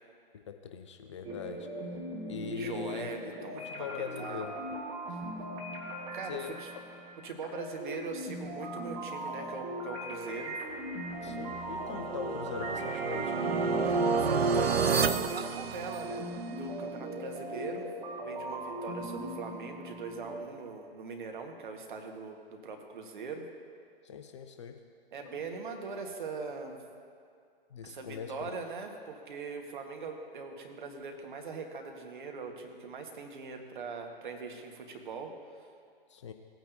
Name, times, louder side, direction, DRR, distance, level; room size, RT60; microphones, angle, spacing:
voice 1, 0.3-1.7 2.2-4.5 6.3-6.5 11.2-13.4 24.0-24.8 25.2-25.4 27.7-28.3 36.1-36.3, left 7 dB, 30° left, 6 dB, 0.4 m, -41 dB
sound 1, 1.2-20.4, right 1 dB, 20° right, 1.4 m, -40 dB
voice 2, 2.5-4.4 5.1-5.2 6.1-6.7 7.2-10.6 13.8-16.3 16.6-17.9 18.2-23.5 25.1-26.8 27.8-35.3, right 4 dB, 55° right, 3 dB, 1.3 m, -41 dB
sound 2, 11.2-16.4, right 5 dB, 80° right, 0.5 m, -30 dB
16.5 x 9.0 x 2.6 m, 2.3 s
figure-of-eight pair, 115°, 30 cm